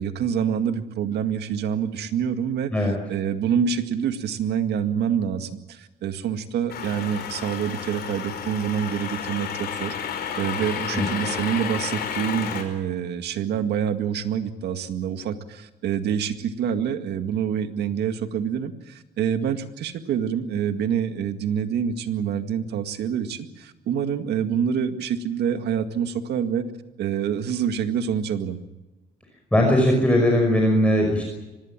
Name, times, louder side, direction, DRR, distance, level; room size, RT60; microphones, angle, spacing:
voice 1, 0.0-2.7 3.1-9.9 10.4-26.7 27.0-28.6, right 8 dB, 75° right, 8 dB, 2.0 m, -26 dB
sound 1, 6.7-12.6, left 7 dB, 70° left, 5.5 m, -31 dB
voice 2, 29.5-31.2, left 1 dB, 5° left, 1 dB, 5.6 m, -19 dB
25.0 x 20.0 x 7.5 m, 1.1 s
cardioid pair, 115°, 17 cm